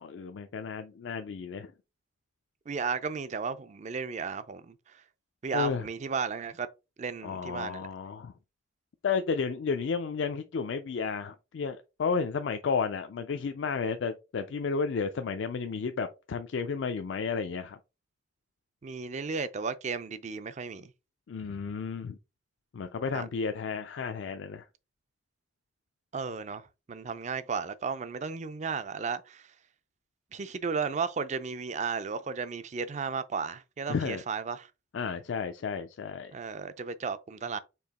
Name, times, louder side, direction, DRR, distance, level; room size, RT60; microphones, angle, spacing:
voice 1, 0.0-1.7 5.5-5.8 7.2-8.3 9.0-17.8 21.3-22.2 22.7-24.6 33.9-34.2 34.9-36.3, left 5 dB, 75° left, 0.4 m, -32 dB
voice 2, 2.7-4.8 5.4-6.7 7.0-7.9 18.8-20.9 23.1-23.3 26.1-29.5 30.3-34.7 36.3-37.6, right 5 dB, 40° right, 0.4 m, -34 dB
4.6 x 2.8 x 4.1 m
head